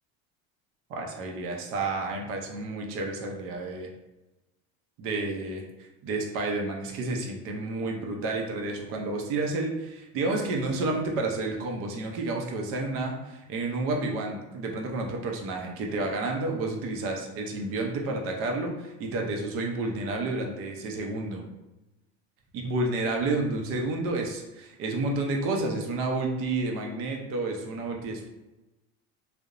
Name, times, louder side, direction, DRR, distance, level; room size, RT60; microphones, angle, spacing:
voice 1, 0.9-3.9 5.0-21.4 22.5-28.3, right 2 dB, 45° right, 1 dB, 0.5 m, -30 dB
2.8 x 2.0 x 2.4 m, 1.0 s
cardioid pair, 165°, 31 cm